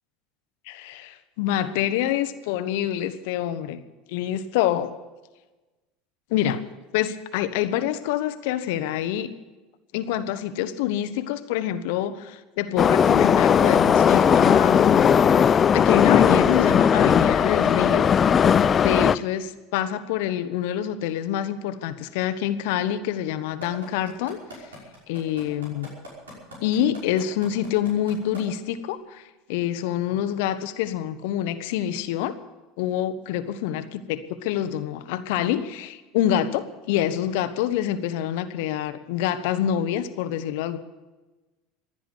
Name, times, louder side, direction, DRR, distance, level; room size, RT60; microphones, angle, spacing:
voice 1, 0.7-3.8 4.1-4.9 6.3-6.6 6.9-9.3 9.9-15.2 15.7-18.1 18.8-24.4 25.1-25.9 26.6-32.4 32.8-40.8, left 11 dB, 65° left, 11 dB, 1.0 m, -26 dB
Subway metro underground, 12.8-19.2, left 7 dB, 30° left, 0.5 m, -18 dB
sound 1, 23.6-28.4 28.9-29.0, equal, 80° right, 5.5 m, -41 dB
16.5 x 10.0 x 8.2 m, 1.1 s
hypercardioid pair, 75°, 0 cm